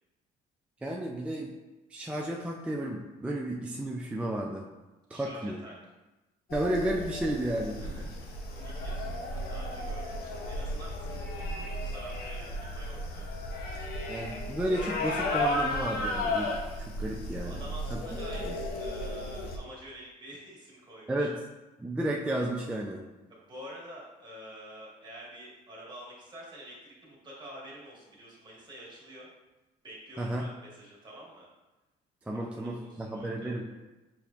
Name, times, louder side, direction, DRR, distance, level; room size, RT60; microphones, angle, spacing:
voice 1, 0.8-1.5 1.9-4.7 5.1-5.6 6.5-7.8 14.1-17.6 17.9-18.0 18.4-18.6 21.1-21.4 21.8-23.1 30.2-30.5 32.3-33.6, right 1 dB, 5° right, -1 dB, 0.4 m, -32 dB
voice 2, 5.1-5.8 7.8-13.3 17.4-21.3 23.5-29.3 29.8-31.5 32.3-33.5, right 1 dB, 25° right, -5 dB, 1.4 m, -48 dB
sound 1, 6.5-19.6, left 1 dB, 65° left, 0.7 m, -34 dB
6.1 x 3.3 x 2.4 m, 1.1 s
cardioid pair, 110°, 17 cm